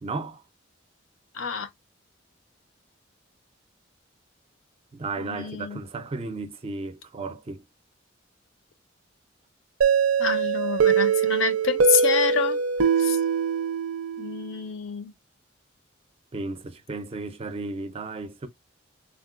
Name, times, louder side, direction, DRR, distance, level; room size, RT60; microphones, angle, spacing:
voice 1, 0.0-0.4 4.9-7.6 16.3-18.5, right 3 dB, 30° right, 0.4 m, -34 dB
voice 2, 1.3-1.7 5.2-5.8 10.2-12.6 13.0-13.2 14.2-15.1, left 6 dB, 70° left, 0.5 m, -28 dB
sound 1, 9.8-14.5, right 6 dB, 85° right, 0.5 m, -22 dB
3.7 x 2.1 x 2.3 m
head